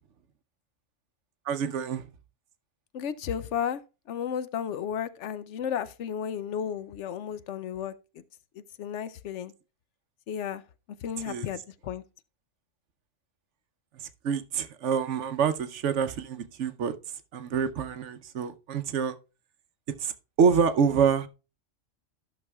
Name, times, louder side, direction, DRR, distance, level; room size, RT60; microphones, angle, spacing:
voice 1, 1.5-2.1 11.3-11.5 14.2-16.9 17.3-19.2 20.0-21.3, right 6 dB, 70° right, 1.0 m, -26 dB
voice 2, 2.9-3.8 4.1-7.9 8.8-9.5 10.3-10.6 11.0-12.0, left 8 dB, 70° left, 0.9 m, -33 dB
14.0 x 6.1 x 2.2 m
omnidirectional pair, 1.3 m